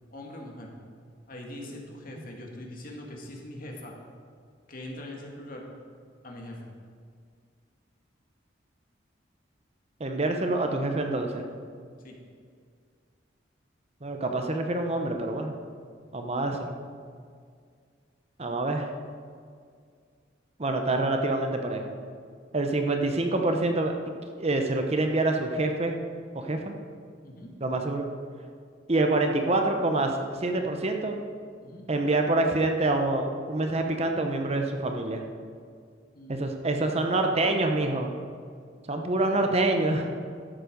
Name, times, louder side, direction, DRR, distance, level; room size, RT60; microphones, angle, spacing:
voice 1, 0.1-0.7 1.3-3.9 4.7-5.7 6.2-6.7 12.0-12.2 27.2-27.6 31.6-31.9 36.1-36.9 39.3-39.5, left 1 dB, 50° left, 0 dB, 1.8 m, -42 dB
voice 2, 10.0-11.5 14.0-15.5 16.1-16.7 18.4-18.9 20.6-22.0 22.5-24.0 24.4-25.9 26.3-26.7 27.6-28.0 28.9-30.1 30.4-31.2 31.9-35.2 36.3-38.1 38.9-40.1, right 2 dB, 35° right, 4 dB, 0.8 m, -26 dB
12.5 x 7.6 x 5.2 m, 2.1 s
head